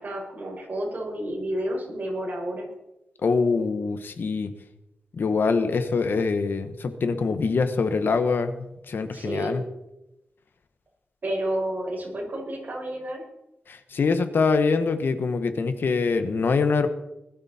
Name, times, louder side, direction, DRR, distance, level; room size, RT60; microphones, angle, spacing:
voice 1, 0.0-2.7 9.1-9.6 11.2-13.2, right 1 dB, 50° right, -2 dB, 6.1 m, -30 dB
voice 2, 3.2-4.5 5.1-9.6 13.7-16.9, left 4 dB, 70° left, 9 dB, 1.4 m, -24 dB
20.0 x 12.0 x 4.5 m, 0.91 s
wide cardioid pair, 155°, 4 cm